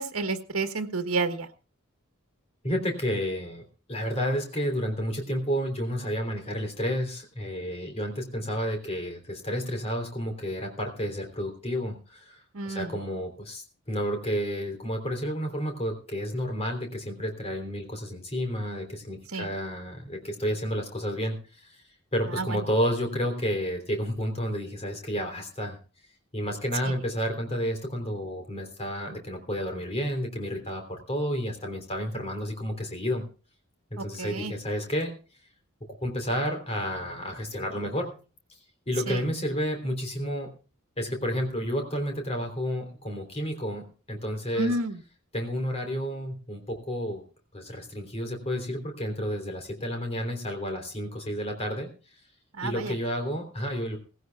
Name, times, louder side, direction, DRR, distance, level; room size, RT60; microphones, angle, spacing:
voice 1, 0.0-1.5 12.5-12.9 19.3-19.5 22.4-22.6 26.8-26.9 34.0-34.5 39.1-39.2 44.6-45.0 52.6-52.9, right 3 dB, 80° right, 7 dB, 1.4 m, -30 dB
voice 2, 2.6-12.4 12.6-21.8 22.1-25.8 26.3-33.3 33.9-35.1 36.0-38.2 38.9-40.5 41.0-44.7 45.3-47.2 47.5-51.9 52.6-54.0, equal, 30° left, 3 dB, 3.3 m, -31 dB
18.5 x 16.5 x 2.3 m, 0.35 s
head